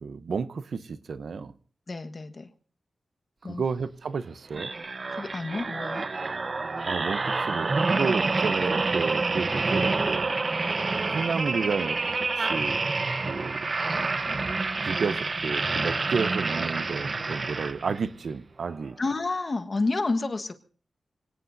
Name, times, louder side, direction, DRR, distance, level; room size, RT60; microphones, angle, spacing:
voice 1, 0.0-1.5 3.4-4.7 6.8-10.3 11.1-12.8 13.3-13.7 14.8-19.0, right 5 dB, 70° right, 0.8 m, -31 dB
voice 2, 1.9-2.5 3.4-3.6 5.1-6.0 19.0-20.5, left 3 dB, 40° left, 1.4 m, -29 dB
sound 1, 4.5-18.1 18.6-18.8, right 3 dB, 45° right, 1.0 m, -28 dB
25.5 x 18.0 x 2.7 m
wide cardioid pair, 100°, 0 cm